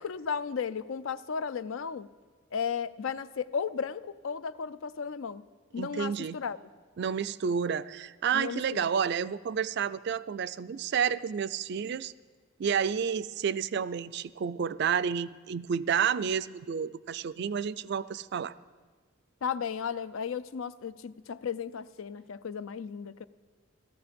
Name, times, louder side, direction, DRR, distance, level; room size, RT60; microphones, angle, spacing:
voice 1, 0.0-2.1 2.5-5.4 5.7-6.6 8.3-8.9 19.4-23.3, left 6 dB, 75° left, 16 dB, 0.5 m, -34 dB
voice 2, 5.8-6.4 7.0-12.1 12.6-18.5, right 7 dB, 55° right, 17 dB, 0.3 m, -30 dB
17.0 x 13.5 x 5.2 m, 1.4 s
head